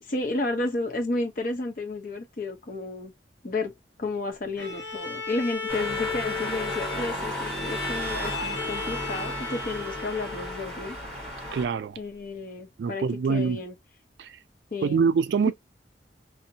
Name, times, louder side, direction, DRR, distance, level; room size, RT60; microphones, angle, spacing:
voice 1, 0.0-3.1 3.4-3.7 4.0-11.0 12.0-13.7 14.7-15.1 15.5-15.6, left 2 dB, 50° left, 0.7 m, -32 dB
Bowed string instrument, 4.6-10.9, left 4 dB, 75° left, 0.9 m, -35 dB
sound 1, 5.7-11.7, equal, 5° left, 1.3 m, -34 dB
voice 2, 11.5-12.0 12.8-13.6 14.2-14.4 14.8-15.5, right 5 dB, 70° right, 0.3 m, -25 dB
2.6 x 2.0 x 2.7 m
head